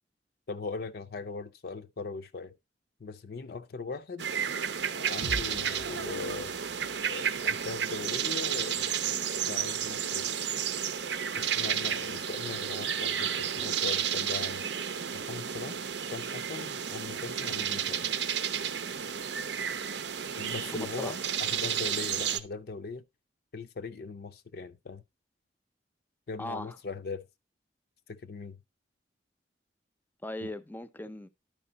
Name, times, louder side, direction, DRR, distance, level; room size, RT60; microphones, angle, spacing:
voice 1, 0.5-2.5 3.0-4.3 4.8-6.6 7.1-10.3 11.4-14.6 15.1-18.1 20.4-23.0 23.5-25.0 26.3-27.3 28.1-28.6 30.4-30.5, left 4 dB, 60° left, 0.5 m, -40 dB
sound 1, 4.2-22.4, right 8 dB, 85° right, 0.7 m, -32 dB
sound 2, 5.2-9.1, right 1 dB, 45° right, 0.6 m, -45 dB
voice 2, 20.6-21.2 26.4-26.8 30.2-31.3, left 1 dB, 10° left, 0.5 m, -39 dB
11.0 x 4.7 x 3.9 m
head